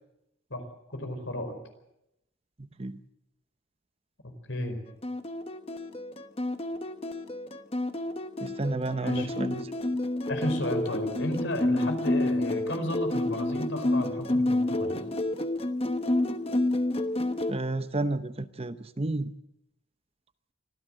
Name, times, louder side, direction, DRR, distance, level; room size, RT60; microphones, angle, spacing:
voice 1, 0.9-1.5 4.2-4.8 9.0-9.3 10.3-15.0, left 1 dB, 70° left, 7 dB, 4.9 m, -33 dB
voice 2, 2.6-3.0 8.4-9.7 17.5-19.3, right 2 dB, 30° right, 11 dB, 0.8 m, -31 dB
sound 1, 5.0-17.5, left 1 dB, 30° left, 1.1 m, -29 dB
25.0 x 16.0 x 7.6 m, 0.84 s
head